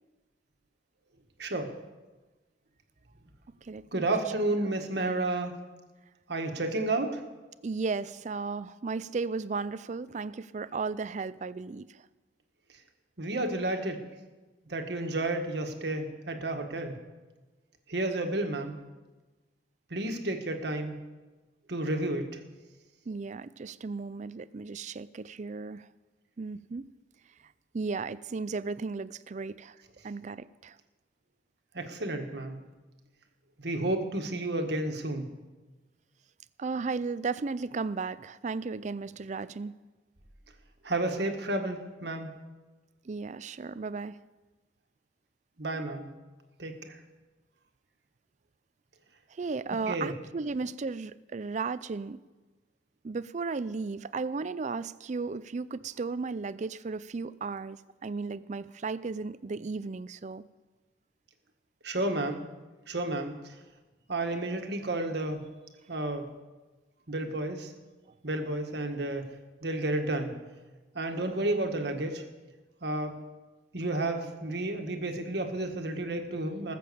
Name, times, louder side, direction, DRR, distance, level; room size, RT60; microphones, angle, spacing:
voice 1, 1.4-1.7 3.9-5.5 6.3-7.2 13.2-14.0 14.7-17.0 17.9-18.8 19.9-21.0 21.7-22.3 31.7-32.6 33.6-35.3 40.8-42.3 45.6-46.1 46.6-47.0 49.9-50.1 61.8-62.4 62.9-63.5 64.1-65.4 65.9-66.3 67.1-67.7 68.2-69.3 69.6-70.4 70.9-72.2 72.8-73.2 73.7-76.7, right 2 dB, 60° right, 4 dB, 1.6 m, -31 dB
voice 2, 3.6-4.0 7.6-12.0 23.1-25.9 26.4-26.9 27.7-29.8 30.0-30.8 36.6-39.7 43.0-44.2 49.3-52.2 53.0-60.4, right 4 dB, 40° right, 17 dB, 0.4 m, -35 dB
19.5 x 7.6 x 6.9 m, 1.2 s
head